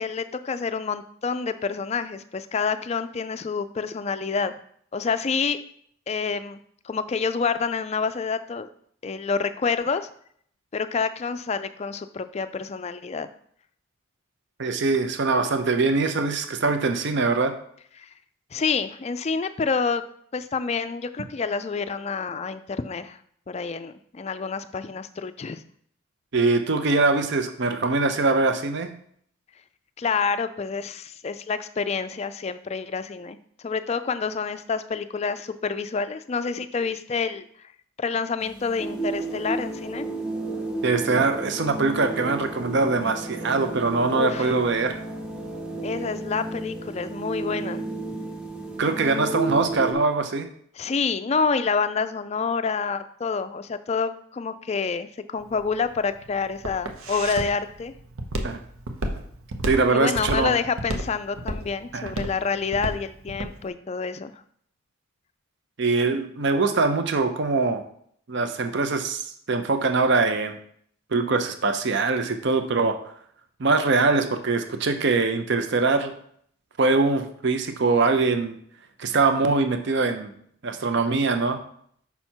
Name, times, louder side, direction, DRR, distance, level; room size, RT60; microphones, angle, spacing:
voice 1, 0.0-4.5 4.9-5.6 6.1-6.6 6.8-8.7 9.0-10.1 10.7-13.3 18.0-18.1 18.5-20.0 20.3-23.2 23.5-25.6 30.0-33.4 33.6-37.5 38.0-40.1 44.1-44.5 45.8-47.8 50.8-57.9 59.9-64.4, left 5 dB, 30° left, 11 dB, 0.3 m, -28 dB
voice 2, 14.6-17.6 26.3-29.0 40.8-45.0 48.8-50.5 58.4-58.6 59.6-60.5 61.9-62.1 65.8-67.8 68.3-70.6 71.1-73.0 73.6-76.1 76.8-78.6 79.0-80.3 80.6-81.6, right 3 dB, 55° right, 7 dB, 0.6 m, -23 dB
sound 1, 38.4-49.9, right 2 dB, 5° right, 0.7 m, -32 dB
Walk footsteps, 55.4-63.6, right 1 dB, 80° right, 0.9 m, -31 dB
5.8 x 5.6 x 4.4 m, 0.64 s
head